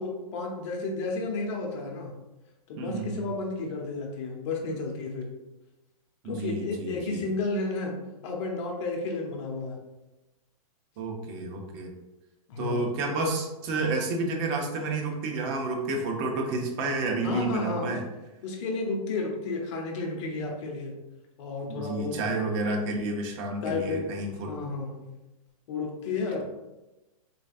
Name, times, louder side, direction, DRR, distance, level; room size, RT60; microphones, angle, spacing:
voice 1, 0.0-2.1 2.7-5.3 6.2-9.8 12.5-12.9 17.2-18.0 18.4-20.9 21.4-22.2 23.6-25.1 25.7-26.4, left 3 dB, 50° left, 0 dB, 0.9 m, -32 dB
voice 2, 2.8-3.3 6.2-7.2 11.0-11.9 12.6-18.1 21.7-24.5, right 2 dB, 35° right, 2 dB, 0.7 m, -30 dB
4.0 x 3.2 x 2.4 m, 1.0 s
hypercardioid pair, 145°, 19 cm